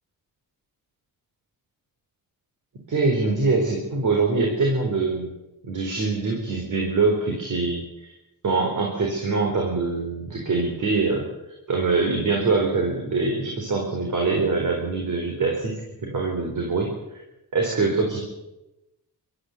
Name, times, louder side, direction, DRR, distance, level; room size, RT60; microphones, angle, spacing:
voice 1, 2.9-5.3 5.6-8.1 8.4-11.3 11.7-15.8 16.0-16.9 17.5-18.2, right 3 dB, 60° right, 1 dB, 4.3 m, -24 dB
25.0 x 13.5 x 8.0 m, 0.97 s
cardioid pair, 110°, 35 cm